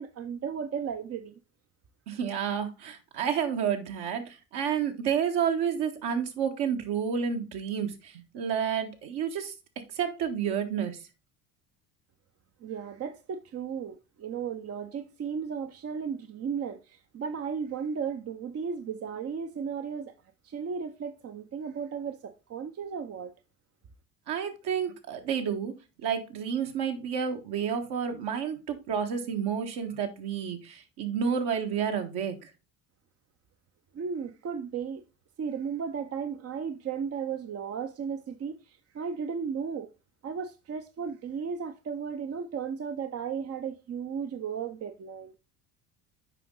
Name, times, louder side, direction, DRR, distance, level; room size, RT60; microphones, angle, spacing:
voice 1, 0.0-1.3 12.6-20.1 20.4-23.3 33.9-35.0 35.4-39.9 40.2-45.3, right 6 dB, 30° right, 0.7 m, -35 dB
voice 2, 2.1-9.5 9.9-11.0 24.3-25.7 26.0-32.5, right 7 dB, 55° right, 1.6 m, -30 dB
7.4 x 5.3 x 3.8 m
hypercardioid pair, 60°, 47 cm